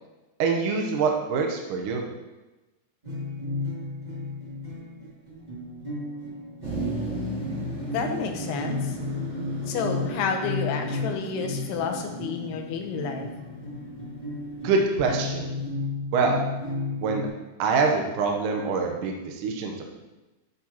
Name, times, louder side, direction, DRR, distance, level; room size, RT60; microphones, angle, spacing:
voice 1, 0.4-2.0 14.6-15.5 16.1-16.5 17.0-17.3 17.6-19.8, right 4 dB, 75° right, 2 dB, 2.0 m, -25 dB
sound 1, 3.0-8.2 8.6-17.3, left 3 dB, 20° right, 1.2 m, -34 dB
Motor vehicle (road), 6.6-15.6, right 2 dB, 35° right, 2.0 m, -36 dB
voice 2, 7.9-9.0 9.7-13.3, left 6 dB, 85° left, 3 dB, 2.9 m, -30 dB
12.5 x 6.3 x 2.9 m, 1.1 s
omnidirectional pair, 4.7 m